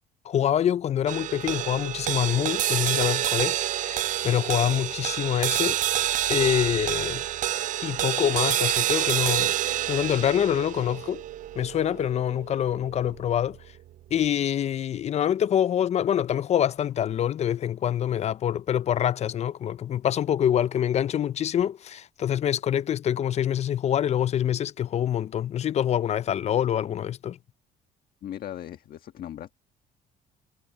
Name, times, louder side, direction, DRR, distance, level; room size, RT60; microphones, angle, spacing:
voice 1, 0.2-5.8 6.3-7.2 7.8-9.5 9.9-11.2 11.6-13.6 14.1-27.4, left 10 dB, 40° left, 0.4 m, -25 dB
sound 1, 1.1-13.6, right 12 dB, 50° right, 0.4 m, -28 dB
voice 2, 28.2-29.5, left 11 dB, 60° left, 1.5 m, -38 dB
cardioid pair, 110°, 17 cm